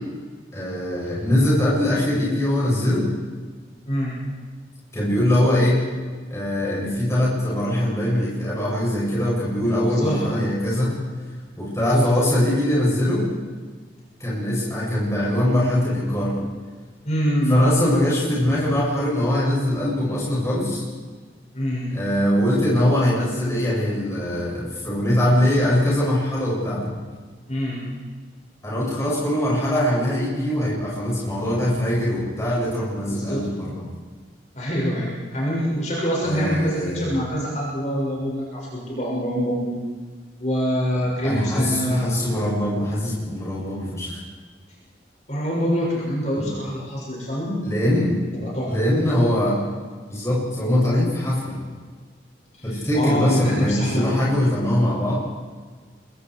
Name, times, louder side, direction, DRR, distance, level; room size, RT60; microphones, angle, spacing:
voice 1, 0.5-3.1 4.9-5.8 6.3-10.9 11.6-13.3 14.2-16.3 17.5-20.8 21.9-26.9 28.6-33.8 36.2-37.1 40.9-44.2 46.4-46.5 47.6-48.3 48.7-49.6 50.1-51.5 52.6-55.2, left 1 dB, 15° left, -5 dB, 7.7 m, -22 dB
voice 2, 9.8-10.2 11.8-12.1 17.0-17.6 21.5-21.9 27.5-27.8 33.0-33.4 34.5-39.8 40.4-42.1 45.3-47.6 48.3-48.7 52.6-54.2, equal, 40° left, -4 dB, 6.8 m, -25 dB
27.5 x 23.0 x 4.9 m, 1.5 s
head